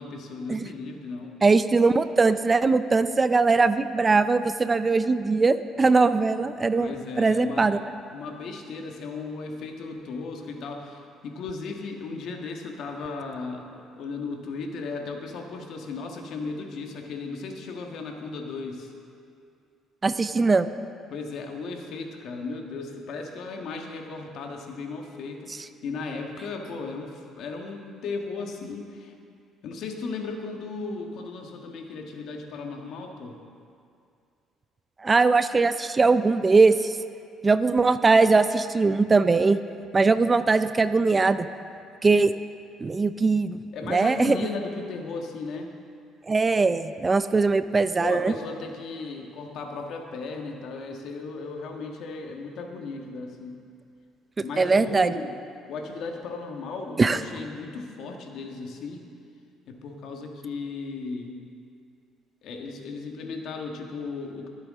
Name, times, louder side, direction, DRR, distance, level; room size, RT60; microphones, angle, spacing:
voice 1, 0.0-1.4 6.8-7.7 8.1-18.9 21.1-25.5 25.8-29.1 29.6-33.4 43.7-45.7 48.0-53.6 54.4-55.3 55.7-59.0 59.7-61.4 62.4-64.5, left 4 dB, 70° left, 2 dB, 1.6 m, -36 dB
voice 2, 1.4-7.8 20.0-20.7 35.0-37.0 37.4-39.6 39.9-41.5 42.0-42.3 42.8-43.6 43.9-44.4 46.3-48.3 54.6-55.1 57.0-57.2, right 4 dB, 25° right, 12 dB, 0.5 m, -21 dB
23.5 x 8.3 x 3.7 m, 2.4 s
supercardioid pair, 85°, 0 cm